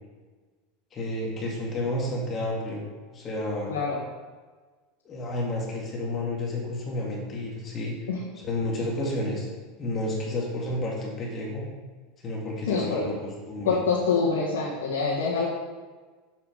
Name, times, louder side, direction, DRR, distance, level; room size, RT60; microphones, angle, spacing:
voice 1, 0.9-2.8 3.1-3.7 5.0-7.9 8.4-9.5 9.8-11.7 12.2-13.8, left 1 dB, 35° left, -3 dB, 2.4 m, -31 dB
voice 2, 12.7-13.1 13.7-15.4, left 5 dB, 85° left, -7 dB, 1.8 m, -25 dB
7.5 x 7.0 x 5.2 m, 1.4 s
hypercardioid pair, 100°, 0 cm